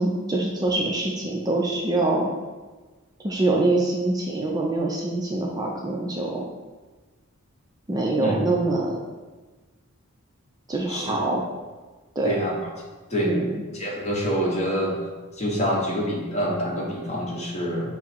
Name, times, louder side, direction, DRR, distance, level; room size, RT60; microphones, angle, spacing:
voice 1, 0.0-2.3 3.2-6.4 7.9-9.0 10.7-11.4 12.2-12.3 13.2-13.6, right 2 dB, 20° right, -1 dB, 0.4 m, -24 dB
voice 2, 10.9-11.2 12.2-12.6 13.1-13.3 13.7-14.9 15.4-18.0, equal, 35° left, -3 dB, 1.0 m, -26 dB
6.0 x 2.0 x 4.4 m, 1.3 s
head